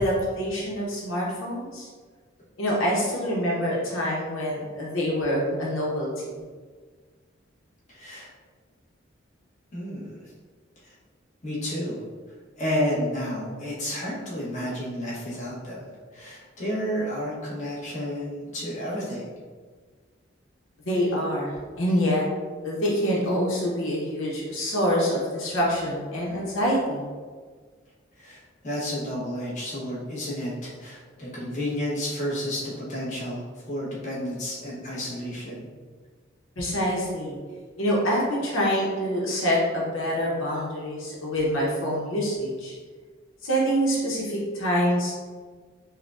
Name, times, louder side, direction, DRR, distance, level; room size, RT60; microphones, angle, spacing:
voice 1, 0.0-1.9 2.6-6.4 20.9-22.2 22.6-27.0 36.6-37.4 37.8-42.7 43.4-45.1, equal, 90° left, -4 dB, 0.9 m, -26 dB
voice 2, 7.9-8.3 9.7-10.2 10.8-11.0 11.4-12.0 12.6-15.8 16.1-19.2 28.2-35.7, equal, 40° left, -7 dB, 1.0 m, -31 dB
5.7 x 2.2 x 2.4 m, 1.5 s
head